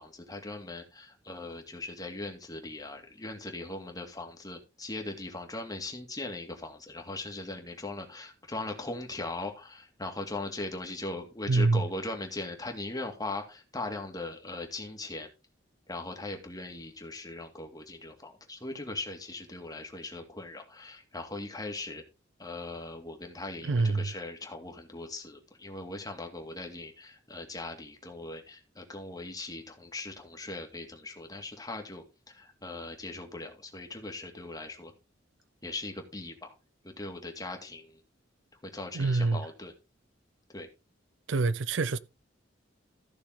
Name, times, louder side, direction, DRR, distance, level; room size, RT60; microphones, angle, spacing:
voice 1, 0.0-15.3 15.9-22.0 22.4-34.9 35.6-36.5 36.8-38.0 38.6-39.7 40.5-40.7, left 2 dB, 20° left, 2.3 m, -39 dB
voice 2, 11.5-11.8 23.6-24.1 38.9-39.4 41.3-42.0, right 3 dB, 70° right, 0.6 m, -26 dB
15.0 x 6.3 x 3.8 m
head